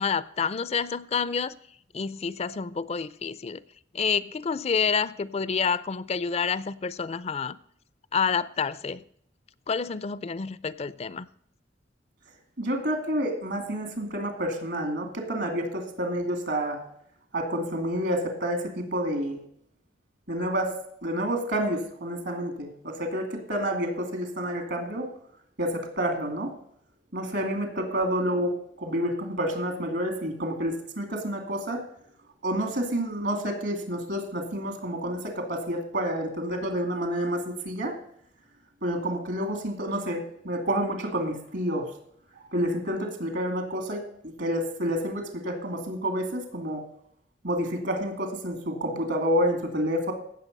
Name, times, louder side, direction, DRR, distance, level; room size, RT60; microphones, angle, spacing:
voice 1, 0.0-1.5 1.9-3.6 3.9-7.6 8.1-9.0 9.7-11.3, left 6 dB, 35° left, 0.4 m, -28 dB
voice 2, 12.6-16.8 17.3-19.4 20.3-20.7 21.0-25.1 25.6-26.5 27.1-31.8 32.4-38.0 38.8-41.9 42.3-46.8 47.4-50.1, equal, 70° right, 2.5 m, -29 dB
17.0 x 6.7 x 5.3 m
head